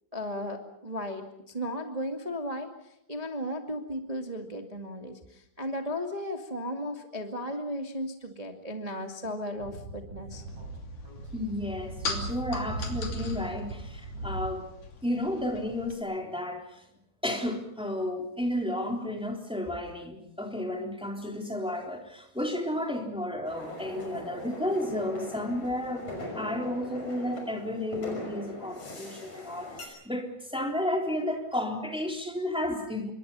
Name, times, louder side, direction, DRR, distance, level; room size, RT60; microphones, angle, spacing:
voice 1, 0.1-10.4, equal, 15° right, 3 dB, 1.2 m, -35 dB
Speech / Wind, 9.5-14.5, right 2 dB, 45° right, 8.0 m, -38 dB
sound 1, 10.5-16.0, left 4 dB, 55° left, 4.3 m, -41 dB
voice 2, 11.3-14.7 15.0-16.8 17.2-26.1 26.3-33.1, left 1 dB, ahead, 1 dB, 3.1 m, -32 dB
sound 2, 23.4-29.9, left 1 dB, 40° left, 7.0 m, -41 dB
27.5 x 24.5 x 5.7 m, 0.79 s
omnidirectional pair, 4.4 m